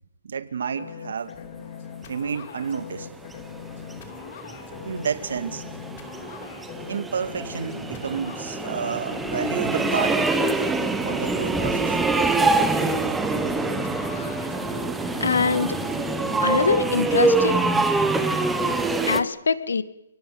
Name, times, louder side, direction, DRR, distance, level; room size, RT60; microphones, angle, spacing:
voice 1, 0.2-1.4 2.1-3.1 4.9-5.6 6.9-10.3 11.0-12.0, right 6 dB, 55° right, 12 dB, 2.3 m, -30 dB
sound 1, 0.8-16.4, left 7 dB, 30° left, 2.7 m, -40 dB
sound 2, 3.3-19.2, right 3 dB, 5° right, 1.2 m, -25 dB
voice 2, 15.2-15.8 16.4-17.6 19.0-19.8, left 5 dB, 75° left, 14 dB, 1.8 m, -23 dB
29.0 x 19.0 x 8.0 m, 0.85 s
hypercardioid pair, 175°, 0 cm